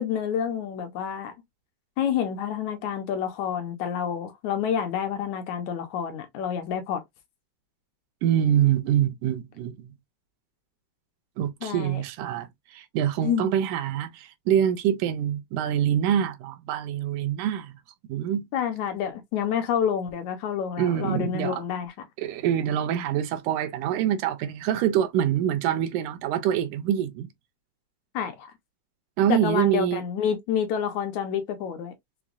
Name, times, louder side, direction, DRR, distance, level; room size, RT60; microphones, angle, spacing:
voice 1, 0.0-1.3 2.0-7.0 11.6-12.0 13.2-13.5 18.5-21.9 28.1-28.5 29.3-31.9, left 8 dB, 75° left, 2.0 m, -28 dB
voice 2, 8.2-9.9 11.4-17.8 18.1-18.5 20.8-21.6 22.2-27.3 29.2-30.0, right 10 dB, 85° right, 2.2 m, -25 dB
5.8 x 2.2 x 2.4 m
omnidirectional pair, 3.6 m